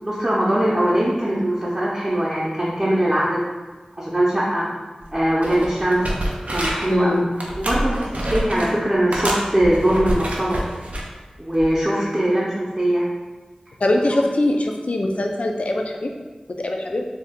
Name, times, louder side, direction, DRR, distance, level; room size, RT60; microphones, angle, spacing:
voice 1, 0.0-3.4 3.9-4.7 5.1-6.0 6.5-7.2 7.6-10.6 11.4-13.0, right 1 dB, 30° right, -7 dB, 0.6 m, -21 dB
sound 1, 5.0-5.1 5.4-7.0 7.4-8.7 9.1-11.1 11.6-11.8, right 1 dB, 75° right, 0.5 m, -27 dB
voice 2, 6.9-7.3 13.8-16.1 16.6-17.1, left 1 dB, 60° left, 2 dB, 0.4 m, -22 dB
2.7 x 2.3 x 3.5 m, 1.3 s
wide cardioid pair, 55°, 2 cm